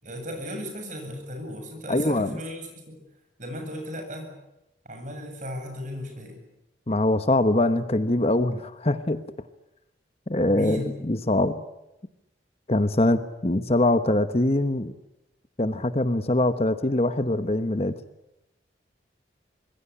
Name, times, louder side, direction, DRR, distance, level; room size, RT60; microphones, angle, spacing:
voice 1, 0.0-3.0 3.4-4.3 4.8-6.4 10.5-10.9, equal, 45° right, 4 dB, 7.9 m, -36 dB
voice 2, 1.9-2.3 6.9-9.2 10.3-11.5 12.7-14.9 15.6-17.9, left 1 dB, 35° left, 11 dB, 1.1 m, -23 dB
26.0 x 21.5 x 9.9 m, 0.91 s
head